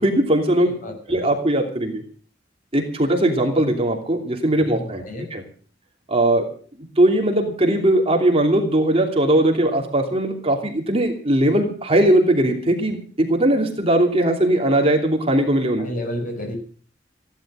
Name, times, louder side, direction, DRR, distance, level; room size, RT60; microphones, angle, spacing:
voice 1, 0.0-0.7 1.1-2.0 2.7-5.0 5.3-5.4 6.1-6.5 7.0-15.9, right 1 dB, 35° right, 2 dB, 2.9 m, -19 dB
voice 2, 0.6-1.2 4.6-5.3 15.8-16.6, left 1 dB, 45° left, 4 dB, 6.1 m, -31 dB
16.0 x 11.5 x 6.3 m, 0.43 s
head